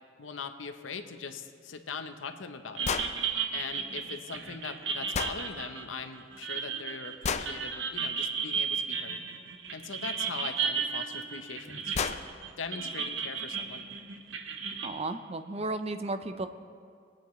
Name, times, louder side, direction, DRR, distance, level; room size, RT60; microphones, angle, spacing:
voice 1, 0.2-2.9 3.5-9.2 9.7-12.1 12.6-13.9, left 5 dB, 85° left, 8 dB, 0.8 m, -41 dB
sound 1, 2.8-3.1 5.1-5.4 7.2-7.5 9.8-9.9 11.2-11.3 11.6-11.7 11.9-12.2, left 6 dB, 35° left, 0.4 m, -30 dB
sound 2, 2.8-14.9, right 6 dB, 70° right, 1.0 m, -34 dB
voice 2, 14.8-16.5, right 2 dB, 35° right, 9 dB, 0.5 m, -34 dB
21.0 x 9.0 x 3.1 m, 2.2 s
head